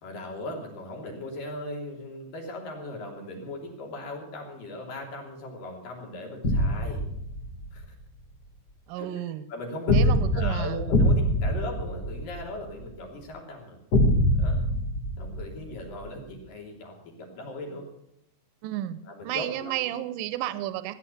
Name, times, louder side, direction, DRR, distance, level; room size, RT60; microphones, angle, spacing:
voice 1, 0.0-7.0 7.7-7.9 9.0-13.8 14.4-14.6 15.2-17.9 19.2-19.7, left 1 dB, 80° left, 0 dB, 4.9 m, -38 dB
sound 1, 6.4-7.8 9.9-12.8 13.9-16.1, left 1 dB, 50° left, 1.3 m, -24 dB
voice 2, 8.9-9.5 9.9-10.8 18.6-21.0, right 13 dB, 80° right, 13 dB, 2.3 m, -32 dB
16.0 x 10.5 x 7.1 m, 0.77 s
omnidirectional pair, 3.9 m